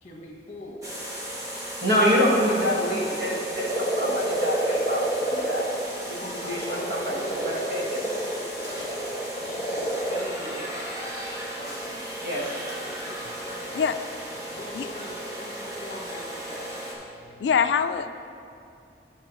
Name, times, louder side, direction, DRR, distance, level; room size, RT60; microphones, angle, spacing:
voice 1, 0.0-0.8 2.4-2.6 6.1-7.6 7.8-8.9 9.3-10.7 11.5-12.0 12.9-13.9 14.3-16.7, left 1 dB, 45° left, -1 dB, 1.4 m, -42 dB
sound 1, 0.8-16.9, right 1 dB, 20° right, 1.4 m, -36 dB
voice 2, 1.8-5.7 6.0-8.0 12.2-12.6, equal, 60° right, -3 dB, 1.6 m, -26 dB
sound 2, 2.2-2.7 3.0-5.8 6.3-10.2, right 1 dB, 20° left, 1.2 m, -29 dB
voice 3, 17.4-18.1, left 6 dB, 80° left, 10 dB, 0.3 m, -23 dB
8.9 x 4.8 x 6.1 m, 2.6 s
head